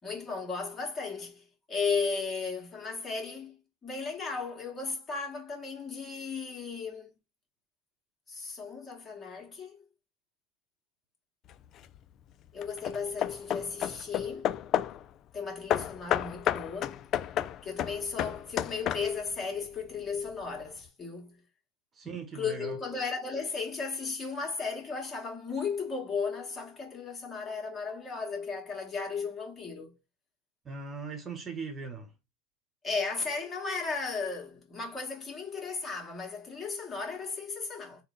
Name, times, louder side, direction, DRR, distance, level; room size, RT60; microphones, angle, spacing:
voice 1, 0.0-7.1 8.3-9.8 12.5-14.5 15.3-17.0 17.6-21.4 22.3-30.0 32.8-38.0, left 5 dB, 25° left, 1.6 m, -35 dB
Hammer / Wood, 11.5-12.0 12.6-15.1 15.7-19.4, left 11 dB, 45° left, 0.3 m, -32 dB
voice 2, 21.9-22.8 30.6-32.1, right 5 dB, 25° right, 1.0 m, -39 dB
3.6 x 2.1 x 3.8 m
hypercardioid pair, 90°, 0 cm